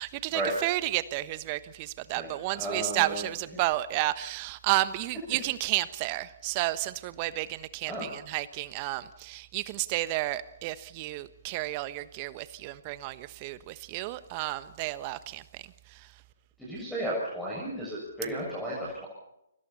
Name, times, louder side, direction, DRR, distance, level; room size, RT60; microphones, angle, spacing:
voice 1, 0.0-16.2, right 17 dB, 30° right, 15 dB, 1.2 m, -32 dB
voice 2, 2.5-3.2 3.5-3.6 7.9-8.1 16.6-19.1, right 1 dB, ahead, -5 dB, 6.6 m, -33 dB
29.5 x 24.5 x 4.3 m, 0.83 s
figure-of-eight pair, 135°, 0 cm